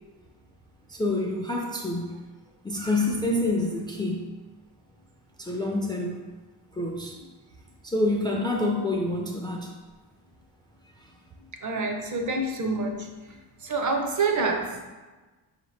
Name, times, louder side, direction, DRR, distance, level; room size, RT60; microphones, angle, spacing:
voice 1, 0.9-2.2 2.6-4.3 5.4-6.2 6.8-7.1 7.8-9.7, left 2 dB, 10° left, -1 dB, 0.3 m, -27 dB
voice 2, 11.6-13.1 13.6-14.9, right 3 dB, 50° right, 3 dB, 0.6 m, -27 dB
4.3 x 2.9 x 3.1 m, 1.2 s
cardioid pair, 110°, 39 cm